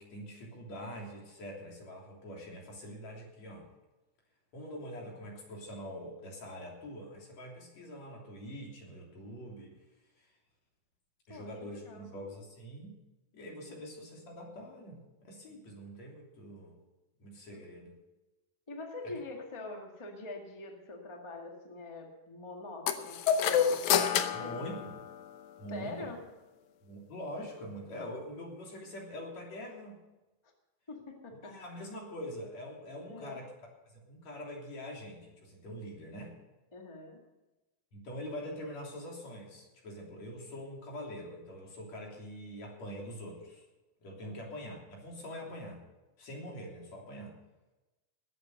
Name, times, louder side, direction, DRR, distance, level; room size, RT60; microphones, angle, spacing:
voice 1, 0.0-3.7 4.5-9.8 10.2-10.3 11.3-13.0 13.3-16.8 17.2-18.0 24.3-24.9 25.6-26.1 26.8-30.0 31.4-33.5 33.9-36.4 37.9-43.7 44.0-45.8 46.2-47.4, equal, 45° left, -2 dB, 4.3 m, -44 dB
voice 2, 11.3-12.1 17.5-17.9 18.7-23.8 24.2-24.9 25.7-26.2 30.9-31.6 33.1-33.4 36.7-37.2 44.2-44.4, left 2 dB, 30° left, 1 dB, 0.5 m, -44 dB
sound 1, 22.9-25.5, left 8 dB, 70° left, 1.8 m, -29 dB
20.5 x 8.1 x 6.6 m, 1.1 s
omnidirectional pair, 4.3 m